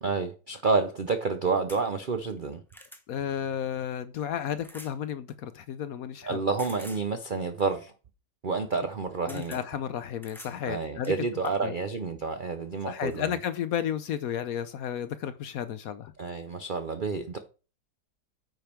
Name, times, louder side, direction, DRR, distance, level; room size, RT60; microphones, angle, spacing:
voice 1, 0.0-2.6 6.2-7.9 8.4-9.6 10.7-13.3 16.2-17.4, right 4 dB, 60° right, 0.5 m, -29 dB
sound 1, 1.7-1.8 2.4-3.0 4.6-5.0 6.6-7.1 8.8-8.9 9.3-9.6 10.2-10.6 11.0-11.6 12.6-12.7 13.1-13.2, equal, ahead, 0.8 m, -48 dB
voice 2, 3.1-6.4 9.3-11.1 11.6-11.7 12.8-16.1, left 9 dB, 65° left, 0.9 m, -33 dB
9.2 x 5.3 x 4.5 m
omnidirectional pair, 1.9 m